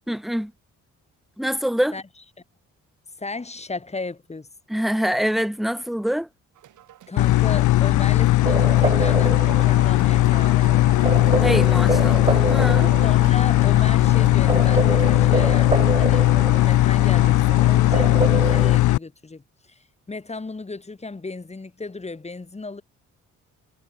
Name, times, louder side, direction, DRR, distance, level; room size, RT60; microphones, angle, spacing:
voice 1, 0.1-0.5 1.4-1.9 4.7-6.3 11.4-12.9, equal, ahead, 0.7 m, -25 dB
voice 2, 3.2-4.5 7.1-11.0 13.0-22.8, left 3 dB, 20° left, 4.7 m, -35 dB
sound 1, 6.5-15.9, right 13 dB, 75° right, 4.5 m, -48 dB
sound 2, 7.2-19.0, left 16 dB, 75° left, 0.7 m, -18 dB
sound 3, 8.5-18.8, right 3 dB, 20° right, 1.5 m, -28 dB
cardioid pair, 90°, 30 cm